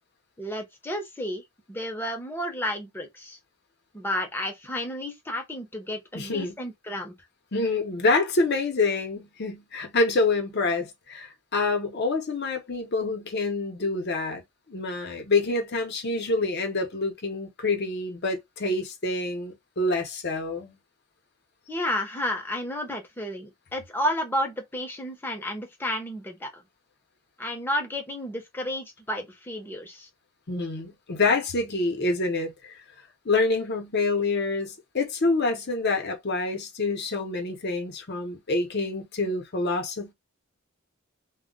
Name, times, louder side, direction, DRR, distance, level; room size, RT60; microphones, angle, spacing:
voice 1, 0.4-1.4 1.7-3.4 3.9-7.2 21.7-26.6 27.4-30.1, left 1 dB, 10° left, 0.7 m, -31 dB
voice 2, 6.1-6.5 7.5-14.4 14.7-20.8 30.5-32.8 33.2-40.1, left 3 dB, 55° left, 0.8 m, -27 dB
2.2 x 2.1 x 3.7 m
head